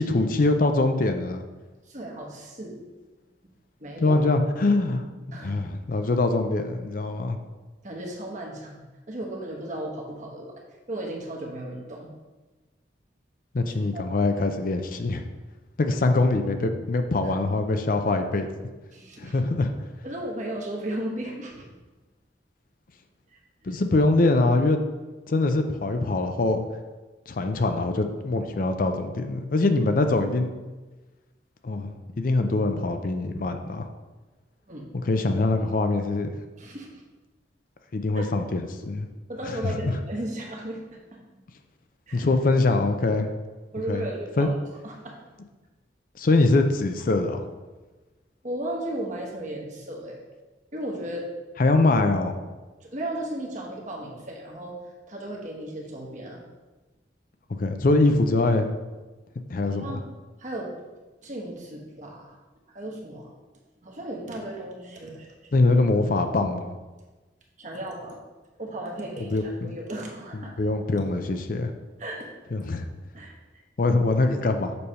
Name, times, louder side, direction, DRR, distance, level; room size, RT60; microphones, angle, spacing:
voice 1, 0.0-1.4 4.0-7.4 13.5-15.2 15.8-18.5 19.2-19.7 23.6-24.8 25.3-26.6 27.3-30.5 31.6-31.9 32.2-33.9 35.0-36.3 37.9-39.1 39.5-39.8 42.1-43.3 43.9-44.1 44.4-44.5 46.2-47.4 51.6-52.4 57.5-58.8 59.5-59.9 65.5-66.7 69.2-69.7 70.3-71.7 72.5-72.9 73.8-74.7, left 2 dB, 50° left, 7 dB, 0.5 m, -23 dB
voice 2, 1.9-2.8 3.8-4.2 5.3-5.5 7.8-10.5 10.9-12.1 13.6-14.2 18.9-19.3 20.0-21.8 34.7-34.8 36.6-37.0 38.1-38.3 39.3-41.2 42.1-42.3 43.7-44.6 44.8-45.2 48.4-50.2 50.7-51.3 52.8-54.8 55.1-56.4 59.6-60.0 60.4-60.7 61.2-62.4 62.7-63.3 63.8-65.5 67.6-68.2 68.6-70.9 72.0-72.3 73.1-73.3, right 1 dB, 45° right, -1 dB, 1.2 m, -35 dB
6.8 x 3.3 x 5.5 m, 1.2 s
head